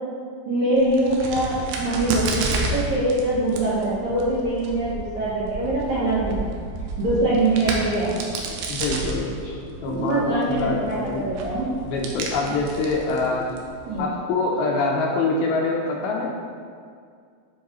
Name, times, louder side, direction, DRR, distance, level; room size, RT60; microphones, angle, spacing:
voice 1, 0.5-6.5 7.0-8.1 9.4-9.5 9.9-11.7 13.9-14.1, right 2 dB, 70° right, -9 dB, 1.8 m, -23 dB
Crack, 0.7-14.0, right 2 dB, 85° right, 3.0 m, -32 dB
voice 2, 8.7-9.4 9.8-11.2 11.8-13.5 14.0-16.3, left 3 dB, 80° left, -1 dB, 2.3 m, -25 dB
12.0 x 4.7 x 3.0 m, 2.2 s
omnidirectional pair, 4.9 m